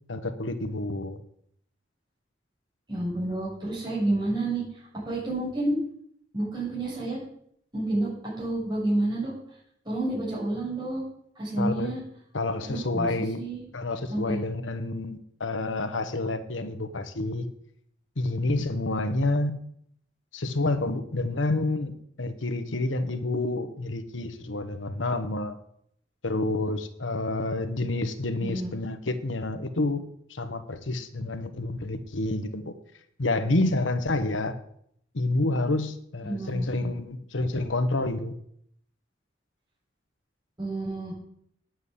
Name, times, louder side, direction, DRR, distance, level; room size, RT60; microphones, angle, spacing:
voice 1, 0.1-1.2 11.6-11.9 12.3-13.4 13.7-17.5 18.2-19.6 20.3-21.9 22.2-25.6 26.2-30.0 30.3-32.7 33.2-34.5 35.1-38.3, left 2 dB, 85° left, 10 dB, 1.2 m, -28 dB
voice 2, 2.9-4.6 5.0-5.8 6.3-7.2 7.7-8.1 8.4-9.3 9.9-11.0 11.4-12.0 12.6-13.1 13.4-13.6 14.1-14.4 28.4-28.7 36.3-36.9 40.6-41.1, right 2 dB, 25° right, -7 dB, 6.9 m, -29 dB
9.5 x 8.0 x 8.4 m, 0.69 s
head